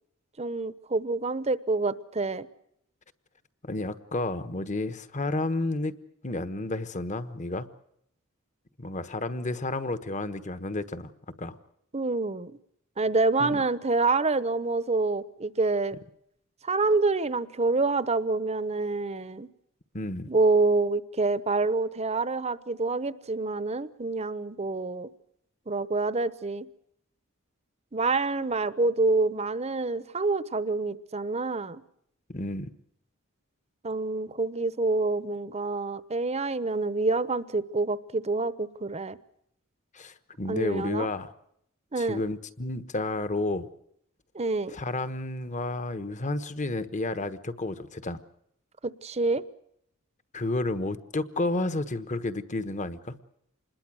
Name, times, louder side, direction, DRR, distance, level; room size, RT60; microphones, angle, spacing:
voice 1, 0.4-2.5 11.9-12.5 13.0-16.0 16.6-19.5 20.3-25.1 25.7-26.7 27.9-31.8 33.8-39.2 40.5-41.1 41.9-42.2 44.3-44.8 48.8-49.4, right 3 dB, 30° right, 15 dB, 0.9 m, -27 dB
voice 2, 3.6-5.9 6.2-7.7 8.8-11.1 11.4-11.6 13.4-13.6 19.9-20.3 32.3-32.7 39.9-41.3 42.0-43.7 44.7-48.2 50.3-53.1, left 2 dB, 35° left, 12 dB, 1.3 m, -31 dB
26.5 x 21.0 x 6.3 m, 0.72 s
head